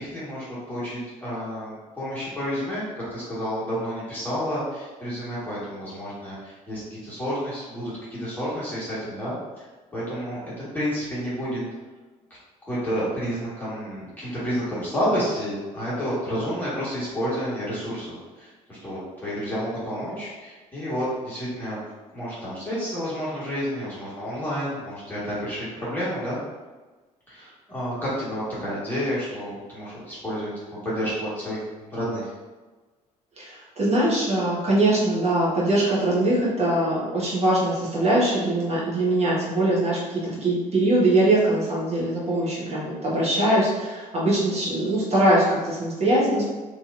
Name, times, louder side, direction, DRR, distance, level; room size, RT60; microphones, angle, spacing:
voice 1, 0.0-9.6 9.9-11.6 12.6-21.8 22.1-26.4 27.3-30.5 30.8-31.6 31.9-32.3, equal, 10° left, -11 dB, 1.5 m, -30 dB
voice 2, 33.4-46.5, right 1 dB, 35° right, -6 dB, 1.3 m, -22 dB
3.1 x 2.8 x 2.5 m, 1.3 s
figure-of-eight pair, 50°, 20 cm